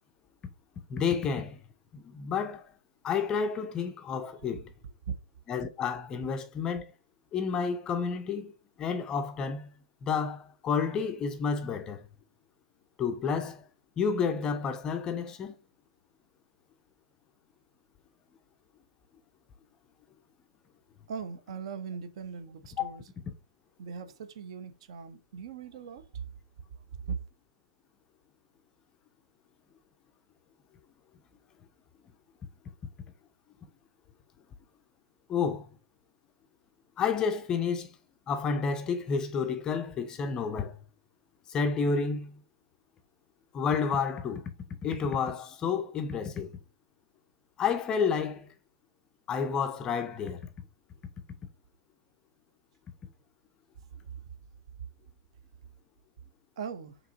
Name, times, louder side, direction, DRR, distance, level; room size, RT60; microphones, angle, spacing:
voice 1, 0.9-1.6 1.9-2.7 3.0-4.7 5.5-6.8 7.3-8.5 8.8-9.7 10.0-12.1 13.0-13.6 14.0-15.6 22.8-23.0 35.3-35.7 37.0-37.9 38.3-40.8 41.5-42.4 43.5-44.5 44.8-46.5 47.6-48.5 49.3-50.5, left 6 dB, 20° left, 0.4 m, -30 dB
voice 2, 21.1-23.0 23.8-26.2 27.1-27.2 56.6-57.0, right 6 dB, 50° right, 0.6 m, -39 dB
4.7 x 2.9 x 2.6 m
figure-of-eight pair, 125°, 4 cm